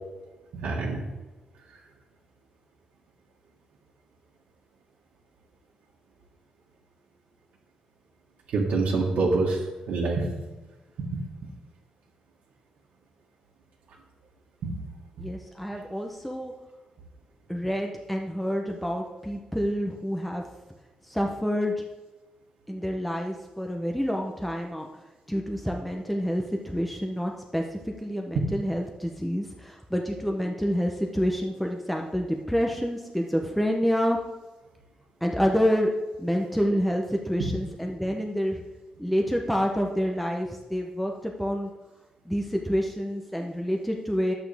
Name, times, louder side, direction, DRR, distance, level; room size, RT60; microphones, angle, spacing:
voice 1, 0.5-1.0 8.5-9.6 9.9-10.4 11.0-11.5 14.6-14.8 15.2-15.3 37.4-37.5, right 3 dB, 85° right, -4 dB, 1.6 m, -26 dB
voice 2, 15.2-16.5 17.5-20.4 21.1-21.7 22.7-24.9 25.3-34.2 35.2-35.9 36.2-38.6 39.0-41.7 42.3-44.3, equal, ahead, 1 dB, 0.7 m, -28 dB
11.0 x 8.1 x 3.4 m, 1.2 s
wide cardioid pair, 150°, 2 cm